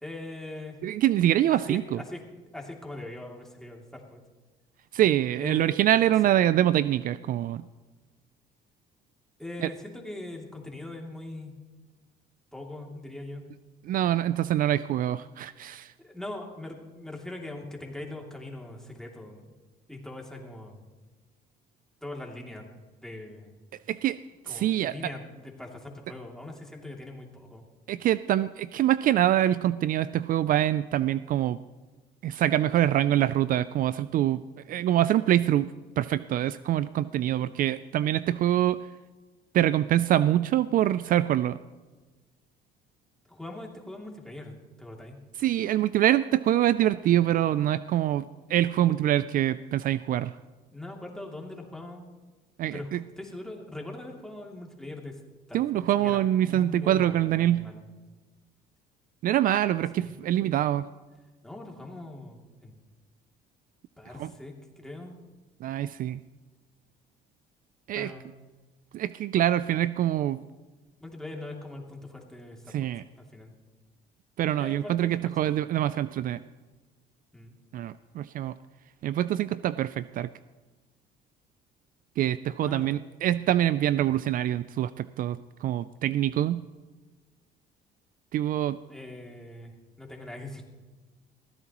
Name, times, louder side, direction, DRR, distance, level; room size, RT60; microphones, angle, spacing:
voice 1, 0.0-0.8 1.5-2.2 2.5-4.2 5.4-5.8 9.4-11.5 12.5-13.5 16.0-19.5 19.9-20.8 22.0-23.5 24.5-27.6 43.3-44.5 44.8-45.2 50.7-52.0 52.7-55.2 55.5-55.6 56.0-57.8 60.0-60.2 61.4-62.7 64.0-65.2 67.9-68.2 71.0-72.9 73.2-73.5 74.5-75.6 77.3-77.5 82.6-82.9 88.9-90.6, left 2 dB, 5° left, 0 dB, 2.7 m, -41 dB
voice 2, 0.8-2.0 4.9-7.6 9.6-9.7 13.8-15.9 23.9-24.2 24.5-25.1 27.9-31.6 32.2-34.4 34.7-35.7 36.0-38.8 39.5-41.6 45.4-50.3 52.6-53.0 55.5-57.7 59.2-60.9 64.2-64.3 65.6-66.2 67.9-68.1 68.9-70.4 72.7-73.0 74.4-76.4 77.7-78.5 79.0-80.3 82.2-86.7 88.3-88.8, right 12 dB, 55° right, 15 dB, 0.4 m, -25 dB
21.0 x 15.0 x 3.0 m, 1.3 s
cardioid pair, 110°, 17 cm